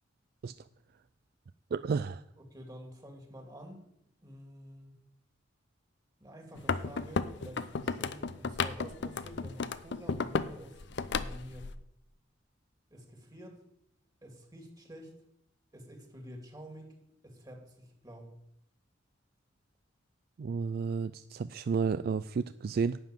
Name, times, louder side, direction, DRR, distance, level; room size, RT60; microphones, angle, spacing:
voice 1, 1.7-2.2 20.4-23.0, right 5 dB, 50° right, 14 dB, 0.3 m, -31 dB
voice 2, 2.4-3.8 4.2-4.9 6.2-10.8 11.1-11.7 12.9-13.6 14.2-15.2 15.7-17.0 17.2-18.3, equal, 20° right, 3 dB, 2.3 m, -49 dB
sound 1, 6.5-10.5 10.8-11.7, left 4 dB, 60° left, 0.6 m, -33 dB
12.0 x 5.9 x 9.0 m, 0.77 s
head